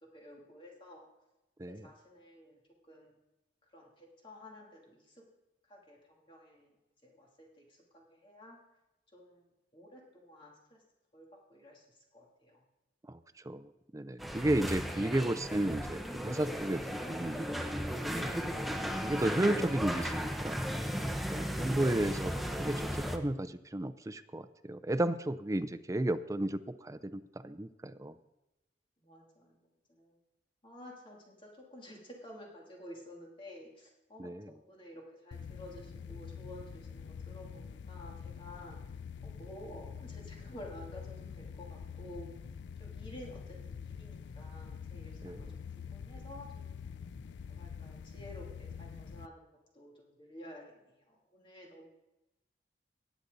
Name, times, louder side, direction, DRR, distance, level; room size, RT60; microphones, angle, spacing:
voice 1, 0.0-1.0 1.7-2.6 2.9-3.1 3.7-5.2 5.7-6.7 7.0-8.6 9.1-9.4 9.7-10.8 11.1-12.6 29.0-29.6 29.9-30.2 30.6-34.3 34.7-38.8 39.2-42.3 42.8-45.6 45.9-46.8 47.5-49.5 49.7-51.9, left 1 dB, 30° left, -2 dB, 3.0 m, -52 dB
voice 2, 13.4-18.3 19.0-20.7 21.3-28.1 34.2-34.5 45.2-45.4, right 1 dB, 20° right, 12 dB, 0.5 m, -33 dB
sound 1, 14.2-23.2, equal, ahead, 0.8 m, -36 dB
sound 2, 35.3-49.3, left 6 dB, 80° left, 0.4 m, -45 dB
18.5 x 8.2 x 4.0 m, 0.94 s
head